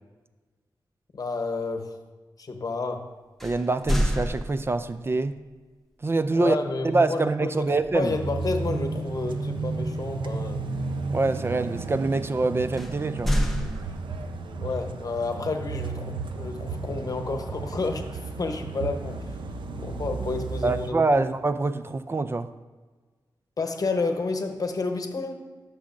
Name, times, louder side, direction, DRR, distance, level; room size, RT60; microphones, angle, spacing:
voice 1, 1.1-2.0 2.4-3.1 6.3-10.6 14.6-19.3 19.8-21.3 23.6-25.3, left 3 dB, 50° left, 5 dB, 0.9 m, -30 dB
sound 1, 3.4-5.0 7.8-8.1 8.5-8.8 12.8-14.4, equal, 5° left, 0.8 m, -28 dB
voice 2, 3.4-5.4 6.0-6.6 6.8-8.1 11.1-13.3 20.6-22.5, right 3 dB, 30° right, 11 dB, 0.3 m, -25 dB
sound 2, 8.1-20.9, right 4 dB, 80° right, 0.5 m, -33 dB
12.5 x 6.3 x 2.5 m, 1.3 s
wide cardioid pair, 85°, 8 cm